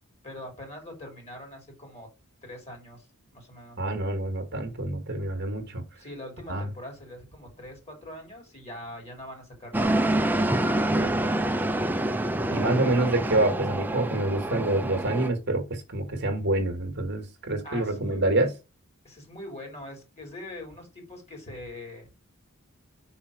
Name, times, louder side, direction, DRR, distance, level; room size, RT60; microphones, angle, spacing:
voice 1, 0.2-2.1 2.4-3.1 3.3-3.8 6.0-10.2 10.5-11.9 17.6-18.2 19.0-22.1, left 1 dB, 30° left, 3.1 m, -43 dB
voice 2, 3.8-5.8 6.5-6.7 11.0-11.1 12.5-18.5, right 2 dB, 50° right, 1.4 m, -27 dB
sound 1, 9.7-15.3, right 1 dB, 10° right, 0.4 m, -26 dB
5.7 x 4.3 x 4.9 m
head